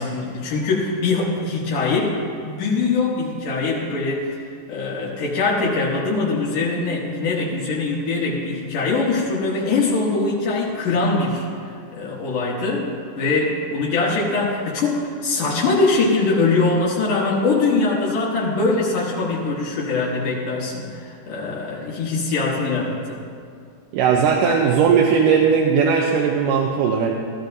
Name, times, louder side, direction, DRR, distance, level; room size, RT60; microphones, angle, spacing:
voice 1, 0.0-4.3 4.7-11.5 11.9-12.9 13.2-23.2, left 3 dB, 80° left, -4 dB, 2.8 m, -22 dB
voice 2, 23.9-27.1, right 6 dB, 85° right, 0 dB, 2.3 m, -18 dB
16.0 x 13.5 x 2.6 m, 2.3 s
omnidirectional pair, 3.7 m